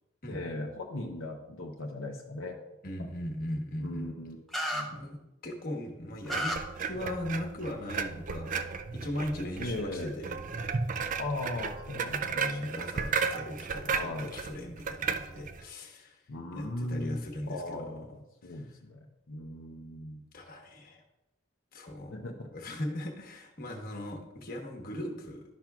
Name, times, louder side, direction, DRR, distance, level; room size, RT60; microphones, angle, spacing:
voice 1, 0.3-2.6 3.8-4.4 4.7-5.0 9.6-10.1 11.2-12.7 13.9-14.4 16.3-20.2 22.1-22.5, left 2 dB, 70° left, 0 dB, 0.7 m, -38 dB
voice 2, 2.8-4.1 4.9-5.2 5.4-6.5 6.8-8.6 8.9-10.4 12.1-16.2 16.5-17.9 18.4-18.7 20.3-21.0 21.7-22.2 22.5-25.4, left 1 dB, 45° left, 2 dB, 1.2 m, -38 dB
sound 1, 4.5-4.8 6.3-6.6, equal, ahead, 0.7 m, -31 dB
sound 2, 6.3-15.6, right 5 dB, 40° right, 0.3 m, -34 dB
11.5 x 5.9 x 2.4 m, 0.92 s
head